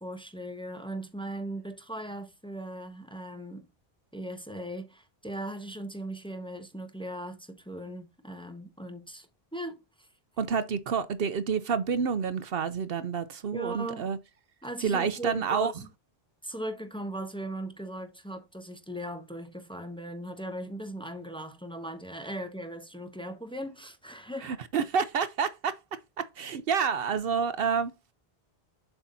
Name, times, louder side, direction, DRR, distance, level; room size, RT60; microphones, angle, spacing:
voice 1, 0.0-3.7 4.1-9.3 9.5-10.1 13.5-14.1 14.6-15.7 16.4-24.5, right 1 dB, 5° left, 1.1 m, -38 dB
voice 2, 10.4-14.2 14.8-15.7 24.4-25.8 26.2-28.1, right 6 dB, 70° right, 0.9 m, -29 dB
7.9 x 5.8 x 2.6 m
omnidirectional pair, 1.0 m